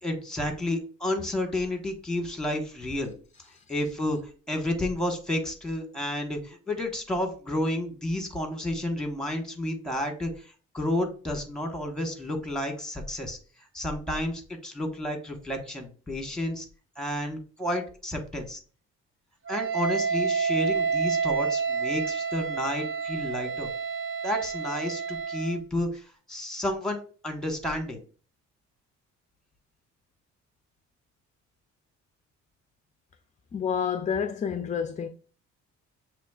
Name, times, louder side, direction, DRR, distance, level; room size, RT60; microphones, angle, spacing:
voice 1, 0.0-3.1 3.7-13.4 13.7-16.7 17.0-18.6 19.5-23.7 24.2-28.0, left 1 dB, ahead, 1.2 m, -31 dB
Wind instrument woodwind instrument, 19.5-25.6, right 5 dB, 45° right, 0.7 m, -29 dB
voice 2, 33.5-35.1, left 7 dB, 25° left, 0.4 m, -29 dB
6.9 x 3.0 x 2.4 m
cardioid pair, 90°, 30 cm